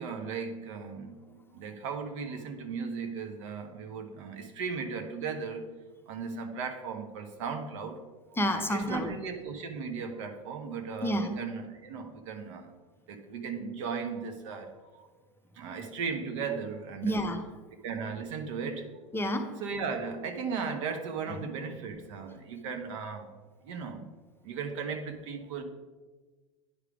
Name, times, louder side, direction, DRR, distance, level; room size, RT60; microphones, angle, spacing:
voice 1, 0.0-5.6 6.1-8.0 8.7-12.7 13.1-14.7 15.0-15.1 15.6-17.3 17.8-18.8 19.6-23.3 23.6-24.0 24.4-25.6, right 5 dB, 65° right, 5 dB, 1.1 m, -36 dB
voice 2, 8.4-9.2 11.0-11.4 17.0-17.6 19.1-19.6 21.3-21.4, equal, 15° left, 5 dB, 0.7 m, -30 dB
9.9 x 3.3 x 4.9 m, 1.3 s
hypercardioid pair, 95°, 17 cm